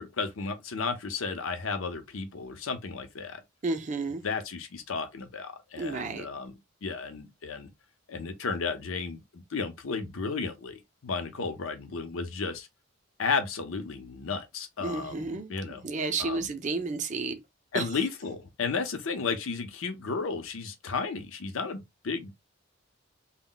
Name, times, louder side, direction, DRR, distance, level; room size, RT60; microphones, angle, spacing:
voice 1, 0.0-3.4 4.2-6.5 6.8-7.7 8.1-12.7 13.2-15.8 16.2-16.5 17.7-22.4, left 4 dB, 75° left, 0.6 m, -33 dB
voice 2, 3.6-4.2 5.8-6.3 14.8-17.4 17.7-17.9, right 3 dB, 35° right, 0.4 m, -32 dB
2.1 x 2.1 x 3.7 m
head